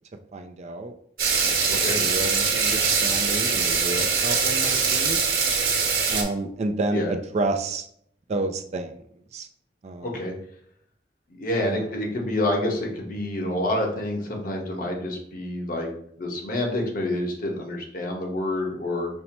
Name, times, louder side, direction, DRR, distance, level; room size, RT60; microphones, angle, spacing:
voice 1, 0.3-1.0 1.4-5.2 6.1-7.9 8.3-9.0 9.3-9.5 9.8-10.2 11.6-11.9, right 2 dB, 40° right, 7 dB, 0.3 m, -30 dB
sound 1, 1.2-6.2, right 5 dB, 60° right, 1.1 m, -23 dB
voice 2, 10.0-10.3 11.4-15.9 16.2-19.1, left 1 dB, 55° left, 0 dB, 1.0 m, -28 dB
5.5 x 2.0 x 4.3 m, 0.67 s
head